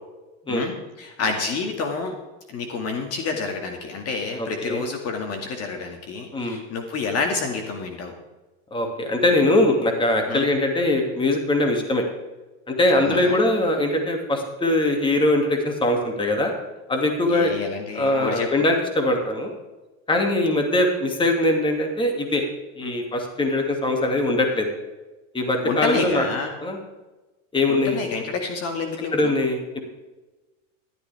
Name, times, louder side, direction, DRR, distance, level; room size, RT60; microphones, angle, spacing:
voice 1, 0.5-2.1 2.5-8.1 10.3-10.5 12.9-13.4 17.3-18.5 22.8-23.0 25.6-26.5 27.7-29.3, left 4 dB, 40° left, 4 dB, 2.1 m, -29 dB
voice 2, 4.4-4.8 6.3-6.6 8.7-12.0 12.7-16.5 16.9-17.6 17.9-19.5 20.1-22.4 22.8-24.7 25.3-26.2 26.6-26.8 27.5-28.0 29.1-29.8, left 1 dB, 15° left, 3 dB, 2.4 m, -22 dB
14.0 x 12.5 x 3.5 m, 1.1 s
supercardioid pair, 120°, 38 cm